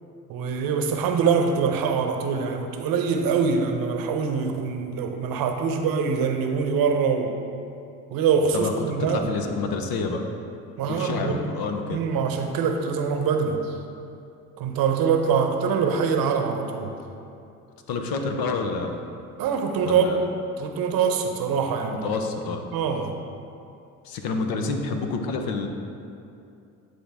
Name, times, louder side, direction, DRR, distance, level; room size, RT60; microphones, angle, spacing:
voice 1, 0.3-7.3 8.1-9.2 10.8-11.4 11.9-13.8 14.6-17.0 19.4-20.1 20.6-22.1 22.7-23.2, right 6 dB, 70° right, 5 dB, 0.7 m, -24 dB
voice 2, 9.1-10.3 10.9-12.0 17.9-19.0 19.9-20.2 22.0-22.6 24.0-25.7, left 4 dB, 70° left, 5 dB, 0.8 m, -28 dB
9.4 x 3.8 x 3.4 m, 2.6 s
supercardioid pair, 65°, 37 cm